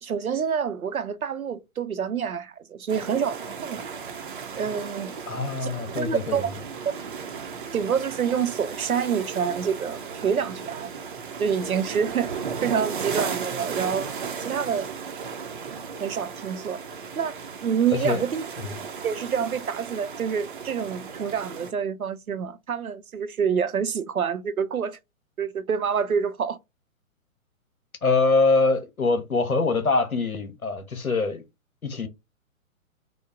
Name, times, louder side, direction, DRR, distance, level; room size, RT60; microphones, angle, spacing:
voice 1, 0.0-4.0 4.6-5.1 5.6-5.7 6.0-6.5 7.7-10.9 11.4-12.3 12.6-14.1 14.4-14.9 16.0-16.8 17.2-17.3 17.6-18.7 19.0-25.0 25.4-26.6, right 7 dB, 85° right, 0.6 m, -27 dB
sound 1, 2.9-21.7, right 6 dB, 40° right, 0.5 m, -35 dB
voice 2, 5.3-6.5 18.0-18.2 18.6-18.7 28.0-31.4 31.8-32.1, left 3 dB, 85° left, 0.9 m, -24 dB
3.0 x 2.0 x 3.5 m
figure-of-eight pair, 125°, 42 cm